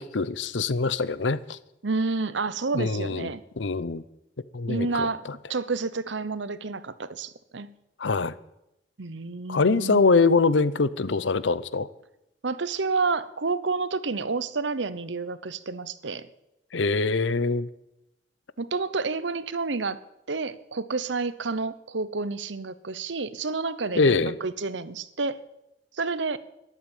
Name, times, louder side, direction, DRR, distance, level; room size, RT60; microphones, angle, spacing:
voice 1, 0.0-1.6 2.7-3.3 3.6-4.0 4.5-5.1 8.0-8.4 9.5-11.9 16.7-17.7 23.9-24.4, left 4 dB, 90° left, 0.8 m, -23 dB
voice 2, 1.8-3.4 4.7-5.2 5.5-7.7 9.0-10.0 12.4-16.3 18.6-20.0 20.3-25.4 26.0-26.4, right 4 dB, 85° right, 1.0 m, -29 dB
13.5 x 12.0 x 9.1 m
head